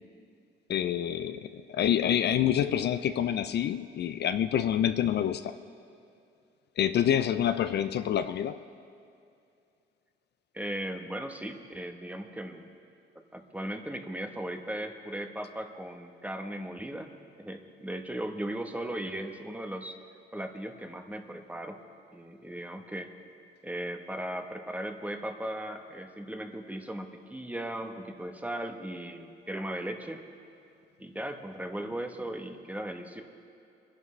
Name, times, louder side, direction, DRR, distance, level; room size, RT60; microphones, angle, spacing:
voice 1, 0.7-5.5 6.8-8.6, left 10 dB, 60° left, 11 dB, 0.4 m, -27 dB
voice 2, 10.5-12.7 13.3-17.1 17.4-20.0 20.3-21.8 22.1-23.1 23.6-30.2 31.0-33.2, right 1 dB, 5° right, 5 dB, 1.0 m, -37 dB
23.0 x 11.0 x 3.2 m, 2.5 s
cardioid pair, 90°, 20 cm